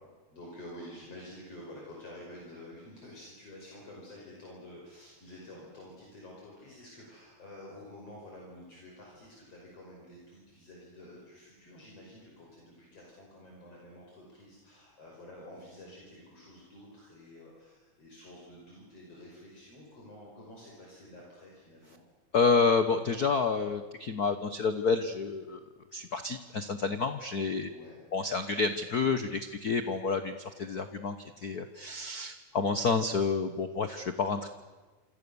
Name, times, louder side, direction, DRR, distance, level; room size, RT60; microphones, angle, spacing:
voice 1, 0.3-22.0 27.6-28.0, left 1 dB, 55° left, -3 dB, 6.5 m, -49 dB
voice 2, 22.3-25.6 25.9-27.7 28.1-34.5, left 4 dB, 85° left, 9 dB, 0.8 m, -29 dB
28.0 x 26.5 x 7.0 m, 1.3 s
omnidirectional pair, 3.4 m